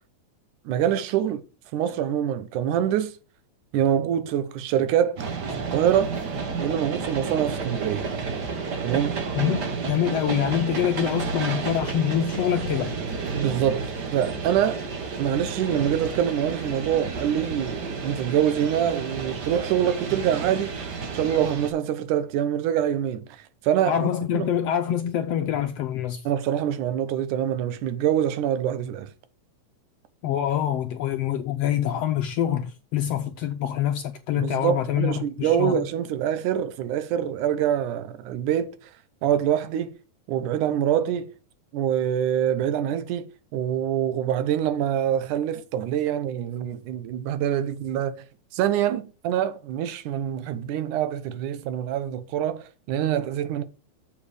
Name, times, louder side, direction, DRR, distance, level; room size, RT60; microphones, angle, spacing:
voice 1, 0.7-1.4 1.7-3.2 3.7-5.3 5.7-6.1 6.6-8.1 8.8-9.2 13.3-14.8 15.2-24.5 26.3-29.1 34.4-38.8 39.2-40.0 40.3-41.3 41.7-48.1 48.5-53.6, right 10 dB, 85° right, 2.4 m, -25 dB
sound 1, 5.2-21.7, right 5 dB, 50° right, 1.3 m, -31 dB
voice 2, 9.4-12.9 23.9-26.2 30.2-35.8, left 10 dB, 75° left, 1.5 m, -25 dB
7.1 x 7.1 x 4.9 m
omnidirectional pair, 3.5 m